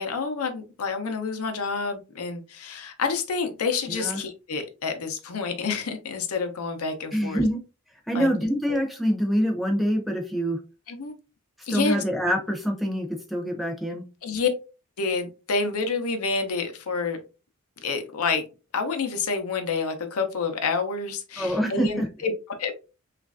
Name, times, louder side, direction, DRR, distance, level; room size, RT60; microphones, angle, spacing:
voice 1, 0.0-7.4 8.1-8.8 10.9-11.1 11.6-12.0 14.2-14.5 15.0-17.2 17.8-18.4 18.7-22.3 22.6-22.8, left 4 dB, 90° left, 0.6 m, -28 dB
voice 2, 3.9-4.2 7.1-7.6 8.1-10.6 11.7-14.0 21.4-22.1, equal, ahead, 0.5 m, -25 dB
3.1 x 2.5 x 2.4 m
head